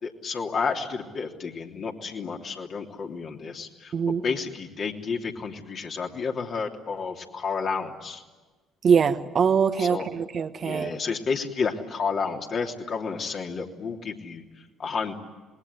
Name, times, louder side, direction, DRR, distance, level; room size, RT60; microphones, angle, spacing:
voice 1, 0.0-8.2 9.8-10.0 10.6-15.1, left 5 dB, 45° left, 2 dB, 3.2 m, -31 dB
voice 2, 3.9-4.2 8.8-11.0, right 6 dB, 45° right, 9 dB, 1.4 m, -23 dB
27.0 x 21.5 x 9.9 m, 1.3 s
figure-of-eight pair, 50°, 0 cm